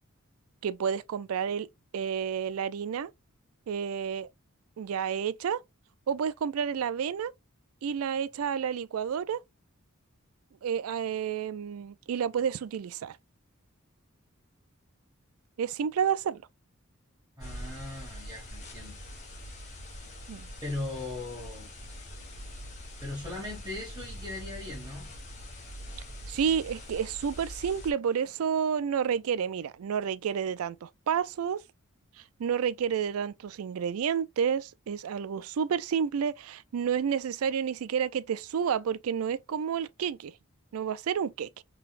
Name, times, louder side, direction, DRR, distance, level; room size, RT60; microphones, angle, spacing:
voice 1, 0.6-1.7 1.9-3.1 3.7-4.3 4.8-5.6 6.1-7.3 7.8-9.4 10.6-13.2 15.6-16.4 20.3-20.5 26.3-31.6 32.4-40.3 40.7-41.6, right 7 dB, 80° right, 0.4 m, -30 dB
sound 1, 17.4-27.9, left 1 dB, 35° left, 1.4 m, -43 dB
voice 2, 17.4-19.0 20.6-21.7 23.0-25.1, left 2 dB, 20° right, 1.6 m, -38 dB
4.0 x 3.3 x 2.5 m
head